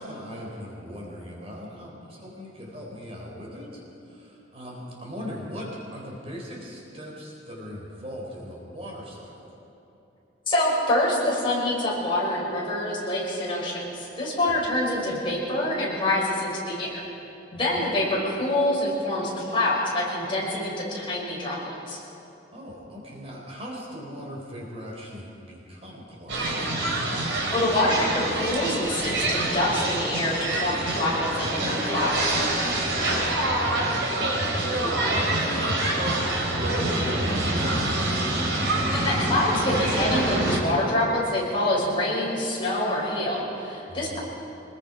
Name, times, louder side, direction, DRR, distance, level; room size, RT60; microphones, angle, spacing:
voice 1, 0.0-9.3 14.5-14.6 17.8-17.9 22.5-26.7 33.0-37.8 43.9-44.2, equal, 30° right, -3 dB, 3.9 m, -39 dB
voice 2, 10.5-17.0 17.5-22.0 27.5-32.4 38.9-44.2, left 1 dB, 25° left, -5 dB, 6.1 m, -26 dB
sound 1, 26.3-40.6, right 1 dB, 70° right, 3.6 m, -26 dB
25.5 x 21.0 x 5.2 m, 2.9 s
head